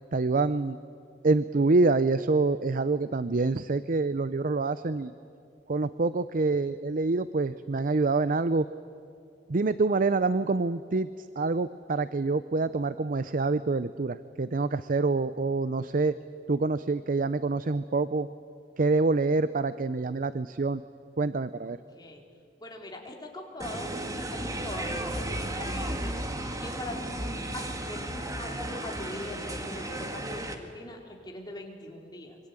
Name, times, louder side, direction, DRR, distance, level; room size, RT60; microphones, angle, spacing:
voice 1, 0.1-0.8 1.2-5.1 5.7-8.7 9.5-16.1 16.5-18.3 18.8-20.8 21.2-21.8, right 3 dB, 50° right, 14 dB, 0.6 m, -26 dB
voice 2, 21.6-22.2 22.6-26.2 26.6-32.4, left 1 dB, 25° left, 0 dB, 3.7 m, -42 dB
sound 1, 23.6-30.5, right 1 dB, 20° right, 2.0 m, -34 dB
26.0 x 24.5 x 9.0 m, 2.4 s
head